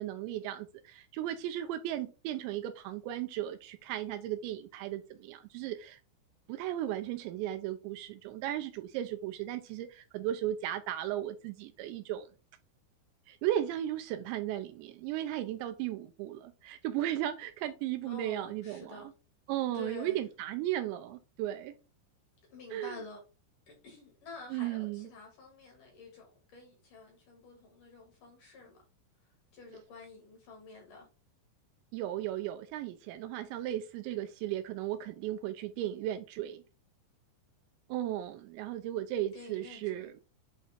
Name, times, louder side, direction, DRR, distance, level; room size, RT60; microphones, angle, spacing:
voice 1, 0.0-6.0 6.5-12.3 13.3-19.0 19.5-21.8 22.7-22.9 24.5-25.1 31.9-36.6 37.9-40.1, right 12 dB, 85° right, 2.6 m, -35 dB
voice 2, 18.0-19.1 19.6-20.2 22.5-23.2 23.7-28.8 29.5-31.1 39.3-40.1, left 3 dB, 60° left, 2.4 m, -49 dB
8.2 x 2.9 x 4.3 m
omnidirectional pair, 5.7 m